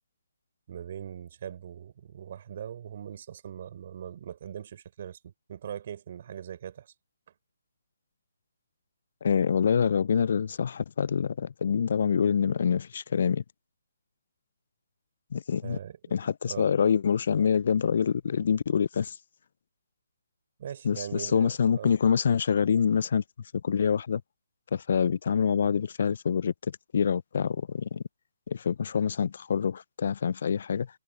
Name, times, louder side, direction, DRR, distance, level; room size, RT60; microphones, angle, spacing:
voice 1, 0.7-6.9 15.6-16.7 20.6-21.9, right 9 dB, 50° right, 4.4 m, -41 dB
voice 2, 9.2-13.4 15.3-15.8 16.1-19.2 20.8-23.2 23.6-24.2 24.7-28.0 28.5-30.9, left 7 dB, 55° left, 0.3 m, -26 dB
hypercardioid pair, 150°, 0 cm